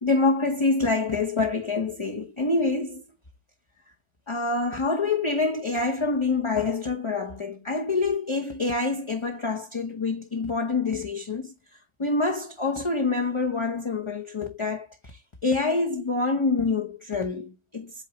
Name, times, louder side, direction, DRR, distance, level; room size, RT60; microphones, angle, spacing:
voice 1, 0.0-3.0 4.3-11.5 12.0-17.9, left 3 dB, 30° left, 0.9 m, -26 dB
8.4 x 3.9 x 3.1 m
omnidirectional pair, 1.2 m